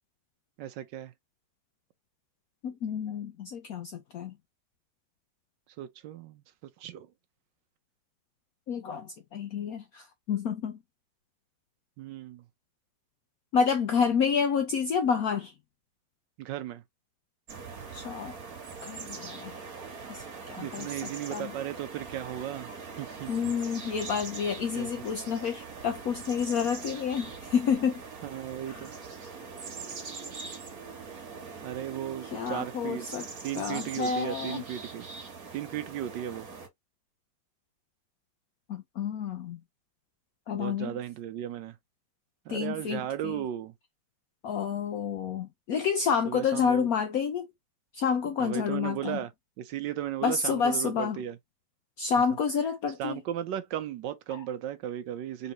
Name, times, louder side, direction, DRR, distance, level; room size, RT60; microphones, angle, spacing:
voice 1, 0.6-1.1 5.8-6.4 6.8-7.1 12.0-12.4 16.4-16.8 20.6-22.7 23.0-23.5 24.7-24.9 28.2-28.9 31.6-33.1 33.4-35.1 35.5-36.5 40.5-41.8 42.5-43.7 46.2-46.9 48.4-49.3 49.6-51.4 53.0-55.5, right 11 dB, 75° right, 1.2 m, -36 dB
voice 2, 2.6-4.3 8.7-10.8 13.5-15.5 17.9-18.3 18.8-19.6 20.1-21.5 23.3-28.0 28.7-28.9 32.3-33.3 33.6-34.6 38.7-39.6 40.5-40.9 42.5-43.4 44.4-47.5 47.9-49.2 50.2-51.2 52.0-53.2 54.3-54.4, left 6 dB, 60° left, 1.1 m, -29 dB
sound 1, 17.5-36.7, right 5 dB, 50° right, 1.9 m, -42 dB
4.0 x 3.9 x 2.8 m
omnidirectional pair, 2.0 m